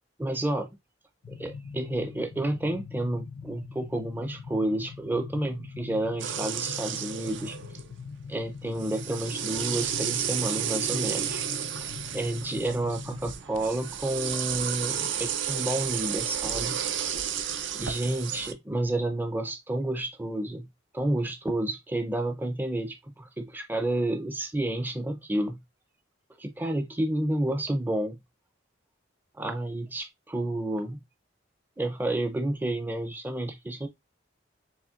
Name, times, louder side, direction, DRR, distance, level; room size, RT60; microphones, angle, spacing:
voice 1, 0.2-0.8 1.3-7.6 8.3-11.4 11.8-16.8 17.8-20.7 20.9-25.6 26.4-28.2 29.3-31.0 31.8-33.9, right 1 dB, 10° right, 0.5 m, -30 dB
sound 1, 1.2-13.3, left 5 dB, 75° left, 0.4 m, -42 dB
sound 2, 6.2-7.9 8.7-18.5, right 9 dB, 70° right, 0.6 m, -32 dB
7.0 x 3.0 x 2.4 m
head